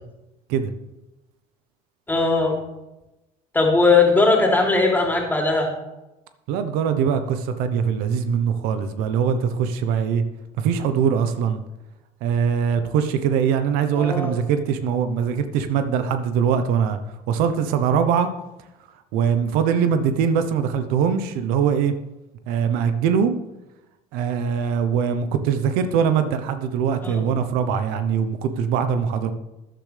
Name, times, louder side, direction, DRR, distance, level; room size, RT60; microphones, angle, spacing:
voice 1, 2.1-2.6 3.5-5.7 13.9-14.3 27.0-27.2, left 3 dB, 15° left, 0 dB, 3.2 m, -19 dB
voice 2, 6.5-10.2 10.6-11.6 12.2-17.0 17.3-18.3 19.1-21.9 22.5-23.4 24.1-29.3, right 7 dB, 85° right, 9 dB, 1.0 m, -22 dB
13.0 x 10.5 x 3.4 m, 0.98 s
cardioid pair, 105°, 15 cm